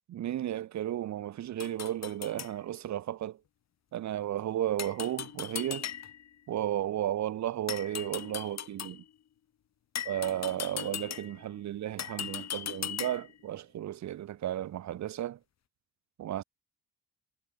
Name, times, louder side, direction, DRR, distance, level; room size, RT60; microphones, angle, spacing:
voice 1, 0.1-3.4 3.9-5.9 6.5-9.0 10.0-15.4 16.2-16.4, right 12 dB, 65° right, 1.3 m, -34 dB
sound 1, 1.6-2.5 4.8-6.3 7.7-9.0 9.9-11.5 12.0-13.4, left 10 dB, 60° left, 2.8 m, -39 dB
cardioid pair, 90°, 30 cm